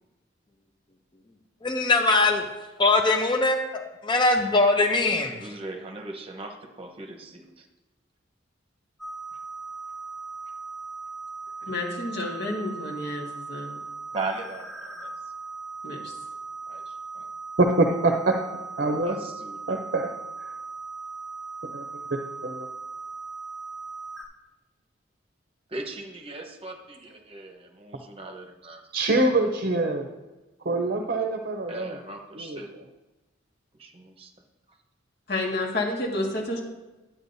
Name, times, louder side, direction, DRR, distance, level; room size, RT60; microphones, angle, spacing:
voice 1, 1.6-2.5 2.8-5.4, left 2 dB, 25° left, 4 dB, 0.6 m, -22 dB
voice 2, 5.2-7.7 11.6-11.7 14.1-15.1 16.7-17.3 19.0-19.9 25.7-28.8 31.7-32.7 33.8-34.3, right 3 dB, 30° right, 3 dB, 1.0 m, -38 dB
sound 1, 9.0-24.2, right 4 dB, ahead, 1.1 m, -38 dB
voice 3, 11.7-13.8 15.8-16.1 35.3-36.6, left 2 dB, 60° left, -1 dB, 1.9 m, -30 dB
voice 4, 17.6-18.4 18.8-19.2 19.7-20.1 20.4-20.5 21.7-21.8 22.4-22.7 28.9-30.1 30.6-32.0 32.4-32.6, right 2 dB, 50° right, 4 dB, 0.6 m, -24 dB
11.0 x 8.7 x 2.7 m, 1.1 s
head